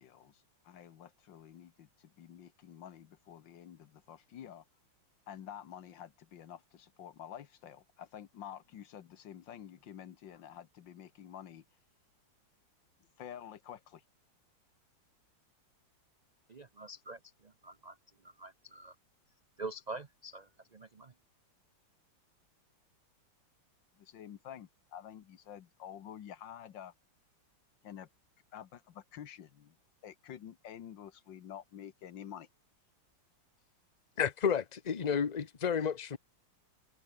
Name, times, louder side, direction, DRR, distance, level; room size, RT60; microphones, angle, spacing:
voice 1, 0.0-4.6 5.3-11.6 13.2-14.0 24.0-26.9 27.8-28.1 28.5-29.8 30.0-32.5, left 9 dB, 70° left, 1.9 m, -49 dB
voice 2, 16.5-18.0 18.2-18.9 19.6-21.1, right 3 dB, 60° right, 0.4 m, -46 dB
voice 3, 34.2-36.2, left 7 dB, 30° left, 0.9 m, -31 dB
omnidirectional pair, 2.1 m